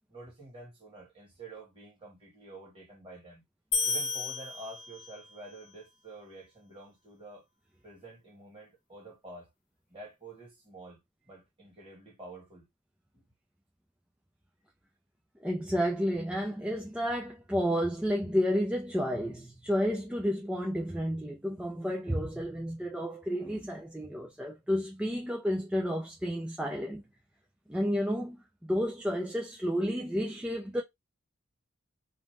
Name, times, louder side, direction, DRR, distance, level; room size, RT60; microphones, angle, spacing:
voice 1, 0.1-3.4 3.8-7.4 7.8-9.5 9.9-11.0 11.2-12.7 13.1-13.2, right 2 dB, 25° right, 1.4 m, -48 dB
sound 1, 3.7-5.3, left 3 dB, 40° left, 0.8 m, -32 dB
voice 2, 15.4-27.0 27.7-30.8, equal, 5° right, 0.3 m, -31 dB
2.6 x 2.1 x 3.2 m
head